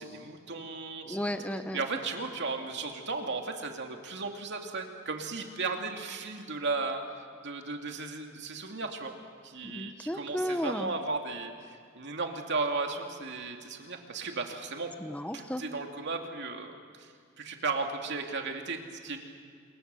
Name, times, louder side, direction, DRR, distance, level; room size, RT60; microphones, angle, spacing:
voice 1, 0.0-1.2 1.7-7.0 7.4-9.2 9.4-11.5 12.0-14.9 15.3-17.1 17.4-19.2, right 3 dB, 60° right, 3 dB, 2.6 m, -35 dB
voice 2, 1.1-1.8 9.6-10.9 15.0-15.6, equal, 5° left, 8 dB, 0.9 m, -34 dB
27.0 x 22.5 x 7.0 m, 2.2 s
head